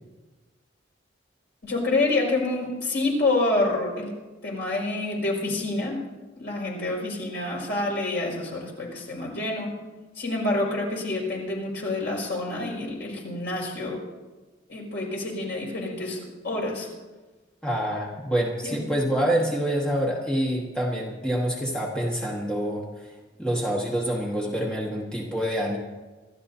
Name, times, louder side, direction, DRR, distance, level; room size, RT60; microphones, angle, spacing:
voice 1, 1.6-4.1 4.4-6.0 6.4-9.7 10.2-14.0 14.7-16.9 18.6-18.8, left 2 dB, 60° left, -2 dB, 5.8 m, -27 dB
voice 2, 17.6-23.1 23.4-25.8, right 1 dB, 5° left, -3 dB, 1.6 m, -26 dB
27.0 x 13.0 x 2.8 m, 1.2 s
head